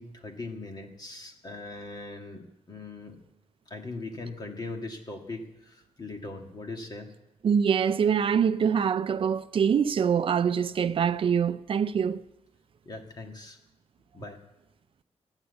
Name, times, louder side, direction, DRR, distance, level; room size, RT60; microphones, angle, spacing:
voice 1, 0.0-3.2 3.7-7.1 12.9-13.6 14.1-14.4, left 3 dB, 35° left, 1.9 m, -40 dB
voice 2, 7.4-12.2, right 7 dB, 50° right, 0.6 m, -24 dB
14.5 x 9.9 x 8.1 m
wide cardioid pair, 145°, 12 cm